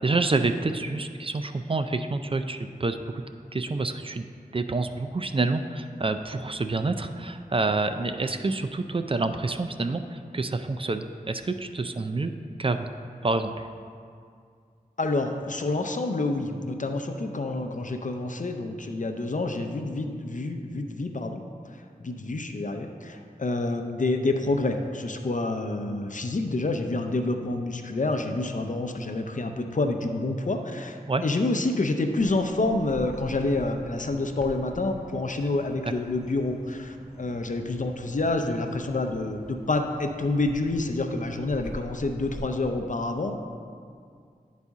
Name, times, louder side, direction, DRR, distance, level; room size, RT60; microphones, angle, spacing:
voice 1, 0.0-3.2 3.5-4.2 4.5-12.3 12.6-12.9 13.2-13.6 31.1-31.2, right 3 dB, 35° right, 8 dB, 0.4 m, -28 dB
voice 2, 15.0-21.4 21.7-43.4, left 2 dB, 55° left, 5 dB, 0.6 m, -28 dB
Bird vocalization bird call bird song, 32.2-42.4, equal, 5° right, 1.2 m, -45 dB
10.5 x 4.1 x 3.6 m, 2.2 s
wide cardioid pair, 45°, 15 cm